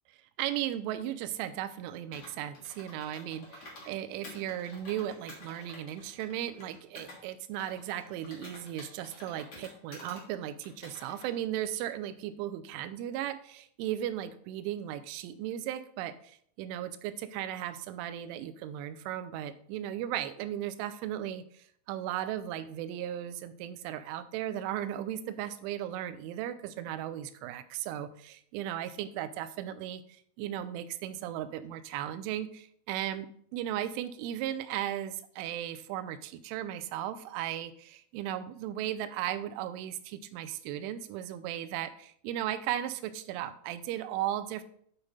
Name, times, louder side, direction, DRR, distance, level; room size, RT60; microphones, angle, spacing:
voice 1, 0.4-44.6, right 11 dB, 85° right, 12 dB, 3.0 m, -36 dB
Computer keyboard, 2.1-3.9 4.2-7.2 7.6-10.2 10.6-11.3, left 1 dB, 40° left, 1.9 m, -50 dB
8.9 x 5.0 x 4.1 m, 0.63 s
omnidirectional pair, 5.7 m